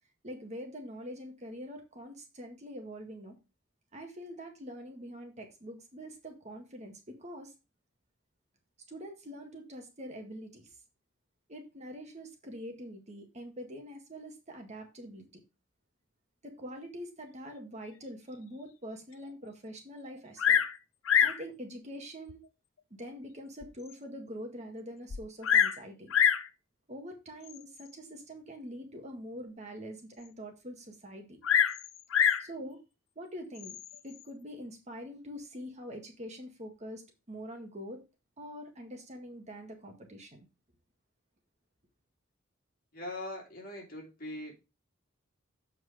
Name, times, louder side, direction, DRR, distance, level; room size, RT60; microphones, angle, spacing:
voice 1, 0.2-3.4 3.9-7.5 8.9-10.7 11.5-15.3 16.4-20.6 21.2-22.4 23.0-26.1 26.9-31.4 32.4-32.8 33.2-33.8 34.0-37.0 37.3-38.0 38.4-40.5, equal, 35° right, 1.8 m, -44 dB
Bird vocalization bird call bird song, 20.4-20.8 21.1-21.4 22.3-22.4 23.0-23.1 23.6-23.7 23.9-24.0 25.1-25.8 26.1-26.5 27.5-27.8 31.4-32.5 33.6-34.0, left 8 dB, 80° left, 0.6 m, -26 dB
voice 2, 42.9-44.5, left 1 dB, 50° left, 2.6 m, -41 dB
7.6 x 4.6 x 4.9 m
head